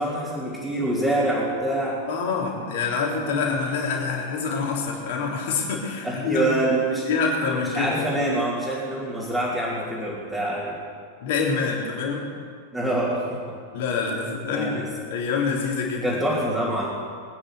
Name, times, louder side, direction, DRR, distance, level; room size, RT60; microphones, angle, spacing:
voice 1, 0.0-2.0 3.3-3.4 6.0-7.1 7.6-10.8 12.7-13.6 14.5-14.9 16.0-16.9, right 1 dB, 10° right, -8 dB, 3.6 m, -25 dB
voice 2, 2.1-6.5 7.0-8.1 11.2-12.3 13.7-16.0, left 5 dB, 50° left, -2 dB, 3.5 m, -26 dB
21.0 x 10.0 x 6.5 m, 2.1 s
figure-of-eight pair, 90°, 0 cm